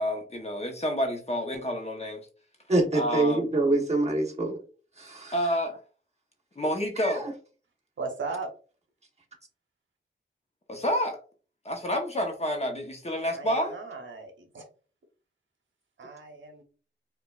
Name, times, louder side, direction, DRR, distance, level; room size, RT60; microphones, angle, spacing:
voice 1, 0.0-2.3 2.9-3.5 5.3-5.8 6.6-7.3 10.7-11.2 11.6-13.7, equal, 30° left, 3 dB, 0.9 m, -29 dB
voice 2, 2.7-4.6 5.0-5.3 7.0-7.1, right 2 dB, 35° right, 0 dB, 1.2 m, -25 dB
voice 3, 8.0-8.5 13.3-14.7 16.0-16.6, right 4 dB, 70° right, 4 dB, 0.9 m, -37 dB
5.0 x 2.5 x 2.4 m, 0.38 s
wide cardioid pair, 90°, 20 cm